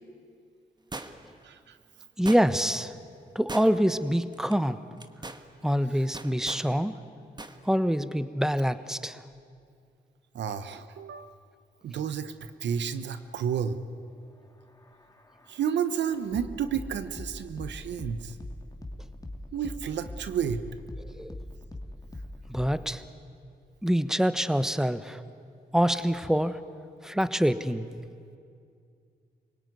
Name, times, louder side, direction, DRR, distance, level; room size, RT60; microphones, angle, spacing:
sound 1, 0.9-1.4 2.3-2.8 3.5-4.0 4.3-4.5 5.0-5.4 6.1-6.7 7.4-7.6 7.9-8.0, right 2 dB, 25° right, 1.5 m, -40 dB
voice 1, 1.4-1.8 10.3-11.3 11.8-13.8 15.5-18.3 19.5-20.6, right 8 dB, 85° right, 11 dB, 1.0 m, -31 dB
voice 2, 2.2-2.9 3.3-4.8 5.6-7.0 7.6-9.2 21.0-21.4 22.5-23.0 23.8-25.2 25.7-26.6 27.0-27.9, equal, 5° right, 12 dB, 1.2 m, -26 dB
sound 2, 14.3-23.0, left 1 dB, 20° left, 2.4 m, -42 dB
25.5 x 18.0 x 9.5 m, 2.3 s
cardioid pair, 50°, 18 cm